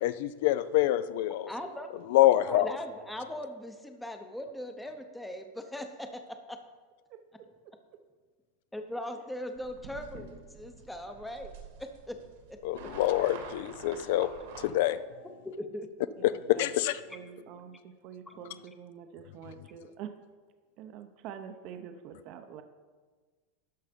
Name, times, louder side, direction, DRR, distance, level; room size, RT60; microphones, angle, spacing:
voice 1, 0.0-1.5 2.1-2.7 12.6-14.3 14.6-15.0 16.2-17.0, left 14 dB, 65° left, 15 dB, 0.4 m, -26 dB
voice 2, 1.5-1.9 2.5-6.2 6.5-6.6 8.7-11.5 11.8-12.2 12.5-12.6 15.4-15.9, left 1 dB, 5° left, 6 dB, 0.7 m, -39 dB
sound 1, 9.6-14.7, right 5 dB, 80° right, 1.9 m, -48 dB
voice 3, 16.3-16.7 17.1-20.1 20.8-22.6, right 8 dB, 45° right, 7 dB, 0.7 m, -46 dB
12.5 x 5.5 x 5.1 m, 1.4 s
supercardioid pair, 140°, 0 cm